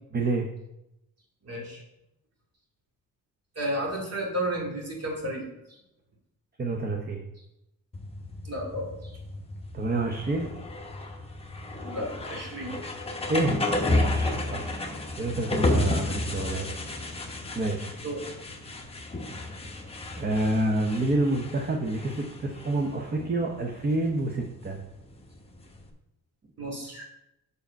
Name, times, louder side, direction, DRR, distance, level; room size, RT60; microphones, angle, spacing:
voice 1, 0.1-0.5 6.6-7.2 9.7-10.5 13.3-14.6 15.2-16.7 17.2-18.0 20.2-24.8, right 2 dB, 25° right, 2 dB, 0.8 m, -28 dB
voice 2, 1.4-1.8 3.6-5.4 8.4-9.1 11.8-12.8 18.0-18.3 26.6-27.1, right 1 dB, 45° right, -2 dB, 2.5 m, -32 dB
sound 1, 7.9-25.9, left 2 dB, 15° left, 1.0 m, -32 dB
6.6 x 5.0 x 5.1 m, 0.87 s
cardioid pair, 110°, 35 cm